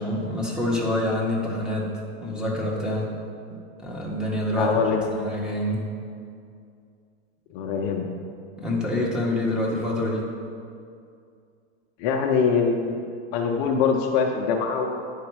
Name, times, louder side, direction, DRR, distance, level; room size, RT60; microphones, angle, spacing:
voice 1, 0.0-1.9 2.2-3.2 3.8-4.8 5.1-5.8 8.6-10.3, left 1 dB, ahead, -4 dB, 1.3 m, -26 dB
voice 2, 4.6-5.1 7.5-8.0 12.0-13.0 13.3-15.0, left 6 dB, 50° left, 2 dB, 0.7 m, -23 dB
9.6 x 4.6 x 4.7 m, 2.4 s
supercardioid pair, 130°, 33 cm